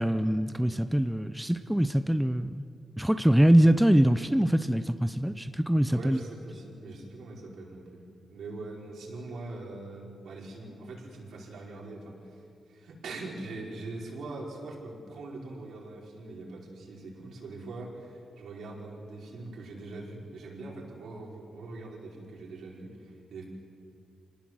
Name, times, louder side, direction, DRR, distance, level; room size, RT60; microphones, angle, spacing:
voice 1, 0.0-2.6 3.0-6.2, right 1 dB, 5° right, 10 dB, 0.6 m, -23 dB
voice 2, 5.8-23.5, right 2 dB, 80° right, -2 dB, 5.1 m, -42 dB
26.5 x 19.0 x 7.7 m, 2.5 s
cardioid pair, 110°, 0 cm